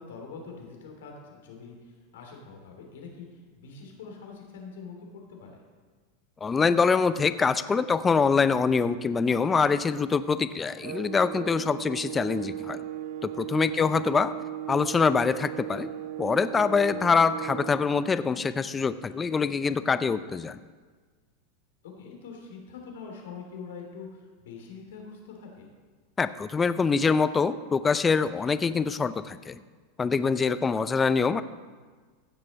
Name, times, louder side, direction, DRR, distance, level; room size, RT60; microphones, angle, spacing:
voice 1, 0.0-5.5 13.6-13.9 22.0-25.7, left 5 dB, 80° left, 1 dB, 2.7 m, -44 dB
voice 2, 6.4-12.8 13.2-14.3 14.7-15.9 16.2-20.6 26.2-29.6 30.0-31.4, left 5 dB, 20° left, 14 dB, 0.4 m, -24 dB
sound 1, 10.8-17.9, right 11 dB, 65° right, 0.4 m, -37 dB
15.5 x 6.6 x 4.1 m, 1.5 s
hypercardioid pair, 110°, 0 cm